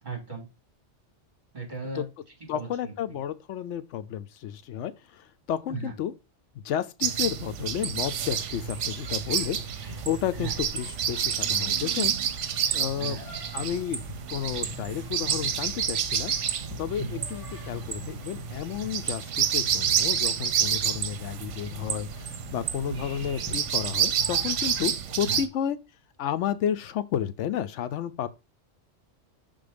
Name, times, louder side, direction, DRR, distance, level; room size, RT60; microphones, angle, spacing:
voice 1, 0.0-0.5 1.5-2.1 2.4-3.2 5.7-5.9 9.8-10.0 10.3-10.5 12.9-13.3 16.9-17.2 22.9-23.0 25.2-25.4, right 4 dB, 40° right, 3.1 m, -37 dB
voice 2, 2.5-6.1 6.6-9.6 10.0-12.3 12.7-13.2 13.5-14.0 14.3-16.3 16.8-25.8 26.2-28.3, left 10 dB, 80° left, 0.9 m, -32 dB
sound 1, 7.0-25.5, right 8 dB, 85° right, 1.0 m, -29 dB
sound 2, 8.1-24.9, left 2 dB, 20° right, 2.2 m, -44 dB
5.9 x 3.8 x 5.0 m
omnidirectional pair, 1.2 m